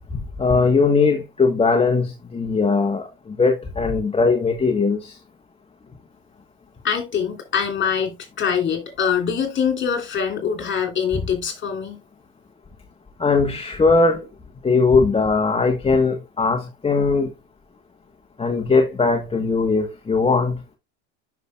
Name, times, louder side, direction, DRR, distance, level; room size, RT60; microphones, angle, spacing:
voice 1, 0.4-5.2 13.2-14.3 14.6-17.3 18.4-20.6, left 4 dB, 15° left, 1.1 m, -19 dB
voice 2, 6.8-12.0, left 7 dB, 30° left, 3.0 m, -24 dB
10.5 x 5.8 x 2.3 m
hypercardioid pair, 100°, 38 cm